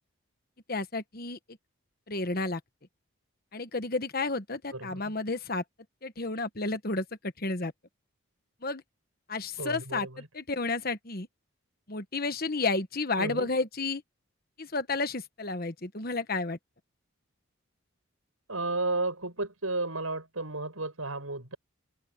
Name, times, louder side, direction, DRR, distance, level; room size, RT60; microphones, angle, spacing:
voice 1, 0.7-1.4 2.1-2.6 3.5-5.6 6.0-7.0 7.4-7.7 8.6-8.8 9.3-10.1 10.3-11.3 11.9-14.0 14.6-16.6, left 3 dB, 45° left, 1.3 m, -31 dB
voice 2, 4.7-5.1 9.6-10.3 13.2-13.5 18.5-21.6, right 2 dB, 80° right, 7.9 m, -33 dB
open air
head